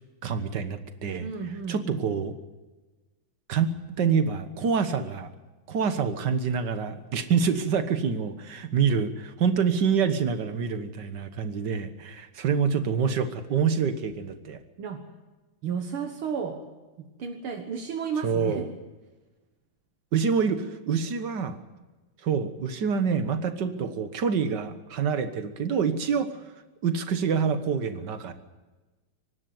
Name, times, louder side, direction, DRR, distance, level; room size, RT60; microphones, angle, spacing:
voice 1, 0.2-1.3 1.7-2.3 3.5-3.7 4.0-5.3 5.7-14.6 18.2-18.7 20.1-21.6 22.2-26.3 26.8-28.3, right 6 dB, 55° right, 9 dB, 1.9 m, -26 dB
voice 2, 1.2-2.0 14.8-15.0 15.6-16.6 17.0-18.7, right 6 dB, 75° right, 4 dB, 2.2 m, -33 dB
24.5 x 12.0 x 9.4 m, 1.2 s
omnidirectional pair, 2.4 m